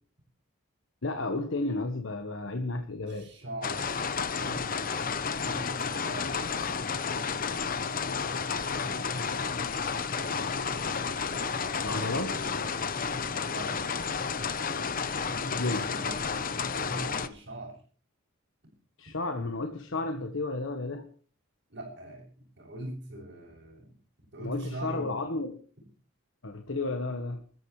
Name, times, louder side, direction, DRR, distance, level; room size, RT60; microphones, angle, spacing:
voice 1, 1.0-3.3 9.0-9.3 9.6-9.8 11.8-12.4 15.4-15.9 19.0-21.1 24.4-25.6 26.4-27.4, left 2 dB, 65° left, 6 dB, 1.3 m, -33 dB
voice 2, 3.1-4.7 5.2-6.8 12.0-12.5 13.1-13.2 13.5-13.8 15.5-16.2 16.7-17.8 21.7-23.9 24.3-25.1, right 1 dB, 50° right, -6 dB, 7.4 m, -42 dB
sound 1, 3.6-17.3, left 5 dB, 40° left, 0.9 m, -31 dB
26.0 x 14.0 x 3.3 m, 0.42 s
head